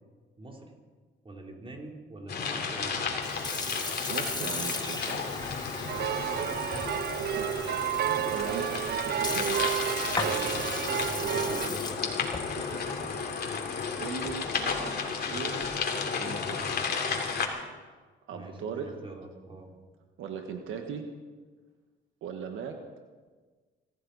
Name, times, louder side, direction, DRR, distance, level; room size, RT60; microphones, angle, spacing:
voice 1, 0.4-0.7 1.2-3.1 5.6-6.8 8.2-8.4 10.2-12.1 18.3-19.7, right 2 dB, 25° right, 0 dB, 3.4 m, -44 dB
sound 1, 2.3-17.5, left 5 dB, 55° left, 2.9 m, -33 dB
Sink (filling or washing) / Fill (with liquid), 3.1-14.6, left 3 dB, 20° left, 1.7 m, -38 dB
voice 2, 4.1-5.2 7.2-7.6 7.9-10.3 12.5-15.6 15.9-16.6 18.3-18.9 20.2-21.0 22.2-22.7, right 6 dB, 85° right, 5 dB, 1.5 m, -39 dB
sound 2, 5.9-11.7, right 11 dB, 55° right, 0.5 m, -31 dB
24.5 x 14.0 x 4.1 m, 1.4 s
cardioid pair, 90°, 20 cm